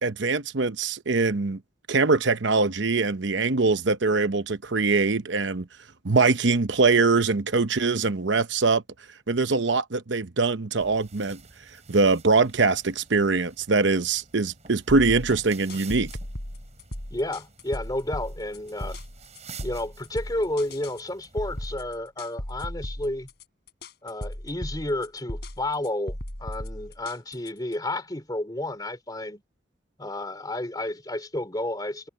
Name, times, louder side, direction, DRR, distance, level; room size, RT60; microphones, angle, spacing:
voice 1, 0.0-1.6 1.9-5.7 6.0-8.8 9.3-11.4 11.9-16.1, right 3 dB, 75° right, 0.9 m, -23 dB
sound 1, 10.8-21.7, right 5 dB, 35° right, 6.7 m, -49 dB
sound 2, 14.9-27.7, left 1 dB, 60° left, 4.5 m, -37 dB
voice 2, 17.1-19.0 19.6-23.3 24.0-29.4 30.0-32.1, left 1 dB, 20° left, 3.5 m, -31 dB
head